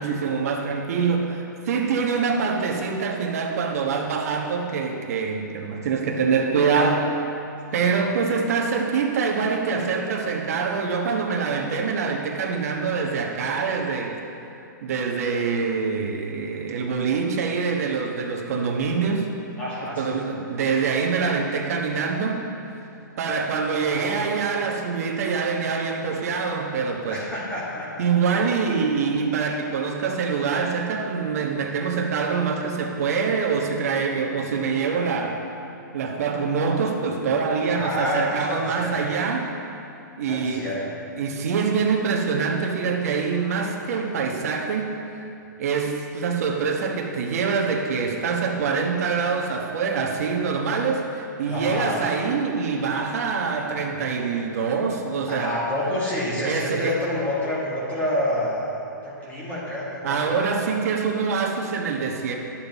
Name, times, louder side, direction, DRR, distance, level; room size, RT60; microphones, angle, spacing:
voice 1, 0.0-7.1 7.7-14.2 14.8-19.3 20.0-22.4 23.2-27.2 28.0-35.4 35.9-39.5 40.2-40.7 41.2-44.9 45.6-55.5 56.4-57.0 60.0-62.3, right 5 dB, 50° right, 1 dB, 1.2 m, -25 dB
voice 2, 19.6-20.2 23.8-24.2 27.1-27.9 37.6-39.0 40.3-40.9 51.5-52.0 53.9-54.0 55.3-58.7 59.0-60.4, left 1 dB, 15° left, -7 dB, 1.7 m, -28 dB
11.5 x 7.2 x 4.1 m, 2.7 s
hypercardioid pair, 160°, 11 cm